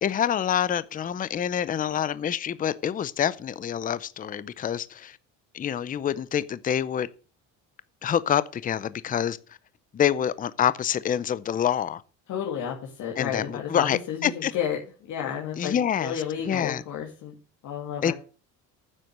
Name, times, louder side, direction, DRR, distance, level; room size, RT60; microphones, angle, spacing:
voice 1, 0.0-5.2 5.5-7.1 8.0-9.4 9.9-12.0 13.2-14.5 15.6-16.8 18.0-18.1, left 9 dB, 25° left, 0.5 m, -26 dB
voice 2, 12.3-14.8 15.1-17.3 17.6-18.1, left 8 dB, 60° left, 2.5 m, -31 dB
9.9 x 7.8 x 6.6 m
cardioid pair, 140°, 34 cm